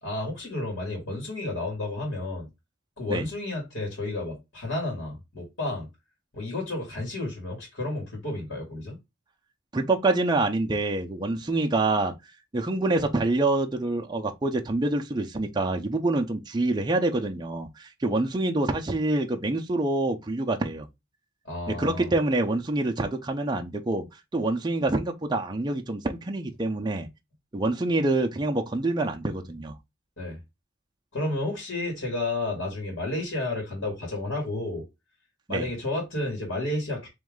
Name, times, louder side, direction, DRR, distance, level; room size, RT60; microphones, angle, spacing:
voice 1, 0.0-2.5 3.0-5.9 6.3-9.0 21.4-22.1 30.2-30.4 31.1-34.9 35.5-37.1, left 2 dB, 70° left, 2.0 m, -31 dB
voice 2, 9.7-12.1 12.5-20.9 21.7-24.0 24.3-27.1 27.5-29.7 35.5-35.7, right 2 dB, 20° right, 0.5 m, -26 dB
3.6 x 3.1 x 3.6 m
head